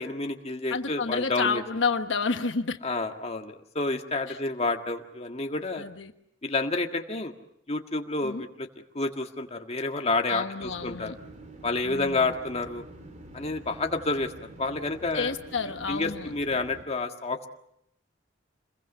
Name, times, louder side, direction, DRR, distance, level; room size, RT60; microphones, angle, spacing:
voice 1, 0.0-1.6 2.8-5.8 6.4-7.3 7.7-8.7 8.9-11.1 11.6-12.8 13.3-14.3 14.6-15.3 15.9-17.5, left 3 dB, 35° left, 4 dB, 1.7 m, -29 dB
voice 2, 0.7-2.8 4.3-4.4 5.7-6.1 8.2-8.4 10.3-11.2 11.8-12.3 15.1-16.3, left 4 dB, 80° left, 7 dB, 1.3 m, -30 dB
sound 1, 10.6-16.9, right 1 dB, 40° right, 2.9 m, -47 dB
27.5 x 21.5 x 7.3 m, 0.78 s
head